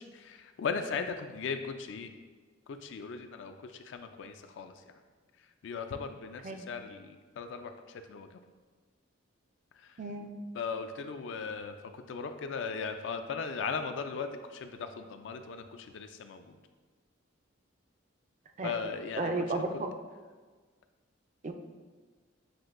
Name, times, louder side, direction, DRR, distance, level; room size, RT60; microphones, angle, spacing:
voice 1, 0.0-2.1 2.7-4.7 5.6-8.3 10.6-16.6 18.6-19.8, left 5 dB, 65° left, 7 dB, 0.3 m, -38 dB
voice 2, 10.0-10.3 18.6-18.7 19.2-19.9 21.4-21.5, right 2 dB, 35° right, 5 dB, 0.3 m, -33 dB
7.5 x 2.6 x 2.5 m, 1.4 s
head